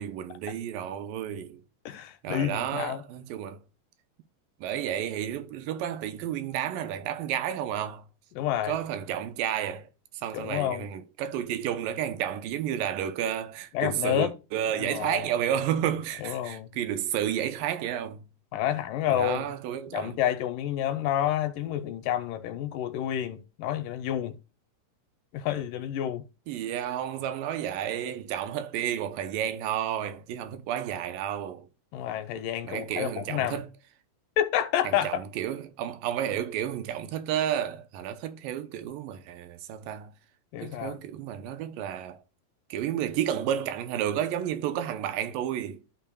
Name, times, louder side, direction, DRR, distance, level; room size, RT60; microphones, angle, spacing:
voice 1, 0.0-1.6 2.2-3.6 4.6-8.0 8.6-9.9 10.1-18.2 19.1-20.2 26.5-31.7 32.6-33.7 34.8-40.1 40.6-42.2 42.7-45.8, right 10 dB, 80° right, 2.4 m, -31 dB
voice 2, 1.9-3.0 8.4-8.7 10.3-10.8 13.7-14.3 14.8-15.2 16.2-16.7 18.5-19.4 19.9-24.4 25.3-26.2 31.9-33.6 34.4-35.1 40.5-41.0, left 11 dB, 80° left, 2.1 m, -29 dB
13.0 x 5.7 x 2.3 m
omnidirectional pair, 4.1 m